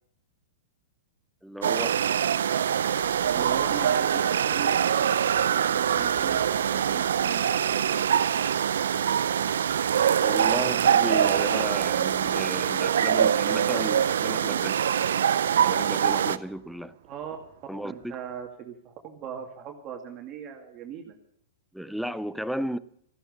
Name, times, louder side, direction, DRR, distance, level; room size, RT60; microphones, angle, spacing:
voice 1, 1.4-2.0 10.2-14.8 15.6-16.9 17.7-18.2 21.7-22.8, equal, ahead, 16 dB, 0.6 m, -34 dB
sound 1, 1.6-16.4, right 8 dB, 80° right, 0.6 m, -24 dB
sound 2, 2.9-18.4, right 9 dB, 60° right, 2.1 m, -50 dB
voice 2, 3.2-8.1 17.1-17.4 17.8-21.2, right 8 dB, 35° right, 2 dB, 2.4 m, -39 dB
15.0 x 11.5 x 6.7 m, 0.72 s
hypercardioid pair, 130°, 0 cm